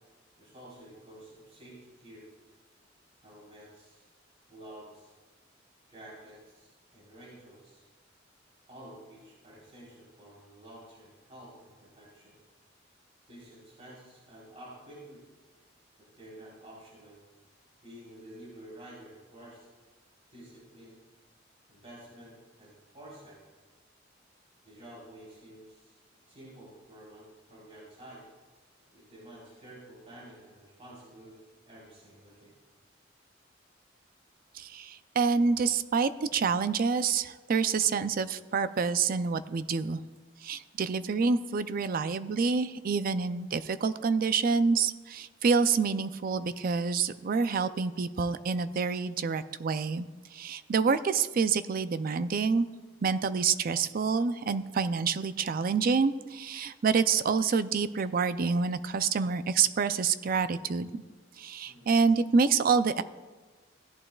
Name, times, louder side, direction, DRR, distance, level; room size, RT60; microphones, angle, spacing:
voice 1, 0.4-2.3 3.2-4.1 4.5-5.1 5.9-7.9 8.7-12.4 13.3-15.2 16.0-17.2 17.8-19.7 20.3-21.0 21.7-23.4 24.6-26.0 26.3-28.2 28.9-32.5 61.6-61.9, right 1 dB, 35° right, -7 dB, 4.0 m, -50 dB
voice 2, 34.5-40.0 40.4-52.7 53.0-61.0 61.4-63.0, right 5 dB, 50° right, 13 dB, 0.4 m, -27 dB
16.5 x 11.0 x 2.3 m, 1.3 s
head